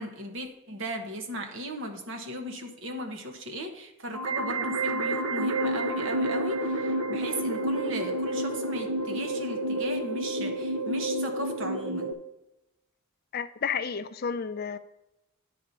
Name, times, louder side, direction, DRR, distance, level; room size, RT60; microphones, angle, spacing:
voice 1, 0.0-12.1, right 1 dB, 55° right, 5 dB, 1.2 m, -37 dB
sound 1, 4.1-12.1, right 1 dB, 80° right, 0.8 m, -29 dB
voice 2, 13.3-14.8, left 6 dB, 45° left, 11 dB, 0.4 m, -31 dB
9.8 x 4.3 x 6.6 m, 0.92 s
head